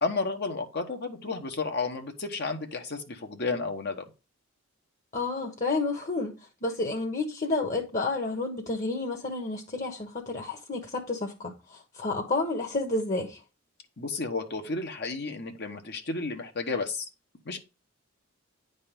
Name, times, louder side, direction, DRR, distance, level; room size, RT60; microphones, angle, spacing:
voice 1, 0.0-4.0 14.0-17.1 17.4-17.6, left 3 dB, 55° left, 1.3 m, -32 dB
voice 2, 5.1-6.3 6.6-13.4, left 3 dB, 40° left, 1.5 m, -30 dB
10.0 x 4.1 x 5.3 m
head